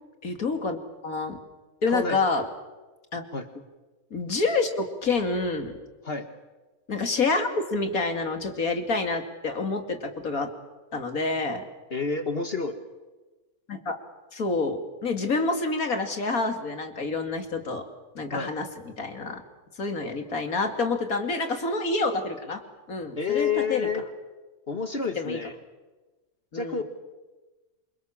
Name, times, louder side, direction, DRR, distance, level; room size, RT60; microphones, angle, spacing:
voice 1, 0.2-0.8 1.0-1.4 1.8-2.4 3.1-3.2 4.1-5.7 6.9-10.5 10.9-11.6 13.7-14.0 14.3-17.8 18.1-19.4 19.8-22.6 22.9-23.9 25.2-25.4 26.5-26.8, left 3 dB, 75° left, 6 dB, 3.0 m, -28 dB
voice 2, 1.9-2.2 3.3-3.5 6.0-6.3 11.9-12.8 18.3-18.5 23.2-24.1 24.7-25.5 26.5-26.8, left 5 dB, 45° left, 8 dB, 1.7 m, -29 dB
27.5 x 24.5 x 7.4 m, 1.2 s
omnidirectional pair, 1.5 m